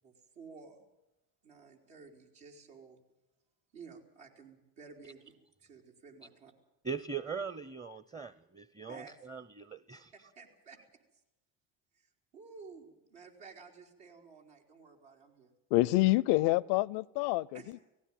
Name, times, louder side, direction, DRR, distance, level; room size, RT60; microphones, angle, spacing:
voice 1, 0.0-0.9 1.4-3.0 3.7-5.3 5.6-6.5 8.9-9.1 10.1-10.8 12.0-15.5 15.9-16.0 17.5-17.7, right 5 dB, 80° right, 4.2 m, -53 dB
voice 2, 6.8-10.1, right 6 dB, 15° right, 0.7 m, -40 dB
voice 3, 15.7-17.8, left 18 dB, 75° left, 0.6 m, -27 dB
18.0 x 16.0 x 9.1 m
hypercardioid pair, 65°, 43 cm